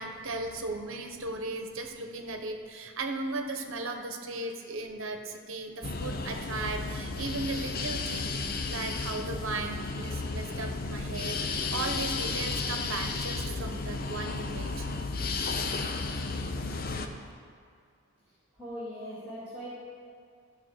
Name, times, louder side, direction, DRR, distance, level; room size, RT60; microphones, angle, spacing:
voice 1, 0.0-8.4 8.7-14.9, right 2 dB, 65° right, 4 dB, 1.0 m, -36 dB
sound 1, 5.8-17.1, left 3 dB, 45° left, 0.6 m, -33 dB
voice 2, 18.6-19.7, equal, 5° right, -14 dB, 2.4 m, -40 dB
14.5 x 5.0 x 6.5 m, 2.3 s
head